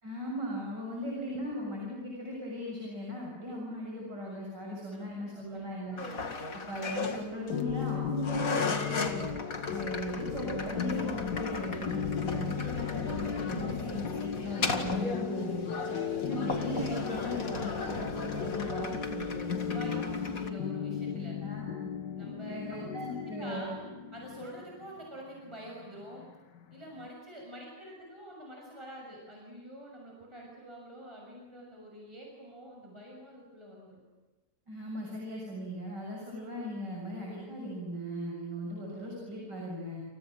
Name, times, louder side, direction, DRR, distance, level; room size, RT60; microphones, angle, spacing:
voice 1, 0.0-6.0 6.5-9.3 9.7-15.7 16.2-20.2 21.4-21.7 22.5-23.7 34.7-40.0, equal, 85° right, -2 dB, 7.6 m, -38 dB
voice 2, 4.9-5.4 5.9-6.0 19.7-21.4 22.2-22.8 23.1-23.8 24.1-26.3 26.7-34.0 38.6-38.8, equal, 15° right, -2 dB, 6.5 m, -47 dB
sound 1, 6.0-20.5, left 4 dB, 55° left, 2.6 m, -36 dB
sound 2, 7.5-27.1, left 8 dB, 90° left, 2.0 m, -37 dB
29.5 x 29.5 x 6.3 m, 1.2 s
omnidirectional pair, 1.8 m